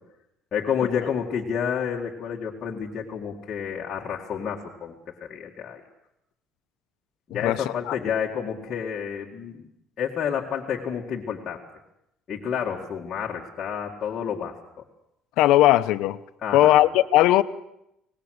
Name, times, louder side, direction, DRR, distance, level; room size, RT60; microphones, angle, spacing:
voice 1, 0.5-5.0 5.2-5.8 7.3-9.7 10.0-11.6 12.3-14.6 16.4-16.8, left 7 dB, 35° left, 2.0 m, -29 dB
voice 2, 7.3-8.0 15.4-16.2 16.5-17.4, left 14 dB, 70° left, 0.9 m, -18 dB
25.0 x 19.5 x 6.6 m
cardioid pair, 160°, 0 cm